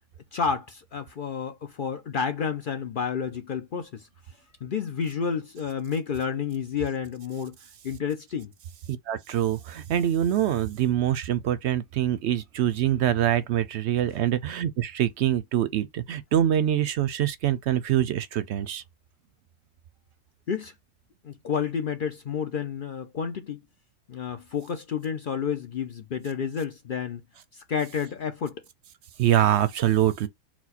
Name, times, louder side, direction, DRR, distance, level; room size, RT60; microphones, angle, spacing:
voice 1, 0.3-4.1 4.6-7.6 7.8-8.5 20.5-20.7 21.2-23.6 24.1-27.2 27.5-28.6, left 6 dB, 55° left, 0.6 m, -30 dB
voice 2, 8.9-18.8 29.2-30.3, right 11 dB, 65° right, 0.8 m, -24 dB
4.4 x 2.2 x 4.0 m
omnidirectional pair, 1.3 m